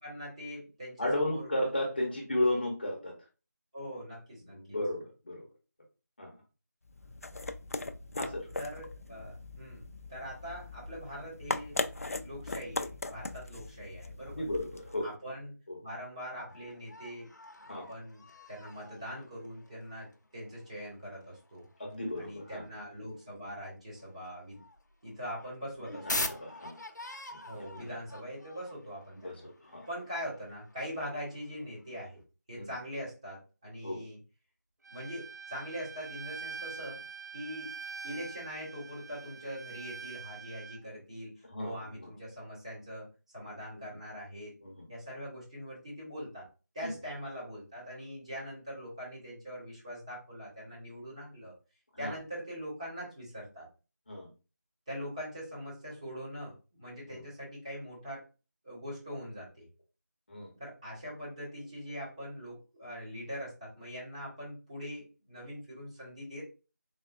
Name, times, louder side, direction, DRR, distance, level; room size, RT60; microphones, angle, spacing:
voice 1, 0.0-1.5 3.7-4.8 8.5-11.7 12.2-14.4 15.0-15.5 15.8-17.3 17.6-21.7 22.2-24.6 25.0-26.3 27.5-29.5 29.9-32.2 32.5-34.2 34.9-37.0 37.3-37.7 38.0-43.1 43.3-44.5 44.9-46.5 46.7-51.5 52.0-53.7 54.9-58.2 58.6-59.7 60.6-66.5, equal, 20° right, -7 dB, 1.6 m, -42 dB
voice 2, 1.0-3.1 4.5-5.4 6.2-6.3 8.1-8.5 14.3-15.1 15.7-15.8 17.7-17.9 21.8-22.6 26.1-26.8 27.5-27.9 29.1-29.9 32.6-32.7 33.8-34.0 41.5-41.7 43.7-43.8 44.6-44.8 46.8-46.9 51.9-52.1 54.1-54.3 57.1-57.2 60.3-60.5, left 1 dB, 30° left, 0 dB, 0.9 m, -34 dB
sound 1, 6.9-15.1, left 2 dB, 55° left, 0.4 m, -39 dB
sound 2, 16.5-23.2 23.5-23.6 23.9-32.1, left 2 dB, 80° left, 0.7 m, -44 dB
Bowed string instrument, 34.8-40.8, right 5 dB, 70° right, 0.5 m, -44 dB
3.9 x 3.5 x 2.5 m, 0.33 s
figure-of-eight pair, 175°, 10 cm